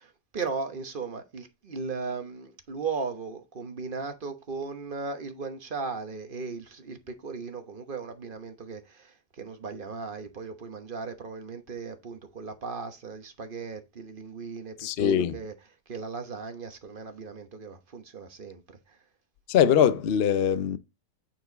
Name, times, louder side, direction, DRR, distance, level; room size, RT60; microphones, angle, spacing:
voice 1, 0.0-15.5 15.9-19.0, right 4 dB, 35° right, 1.0 m, -37 dB
voice 2, 14.8-15.4 19.5-20.8, left 8 dB, 70° left, 0.5 m, -22 dB
9.0 x 4.6 x 4.0 m
omnidirectional pair, 1.8 m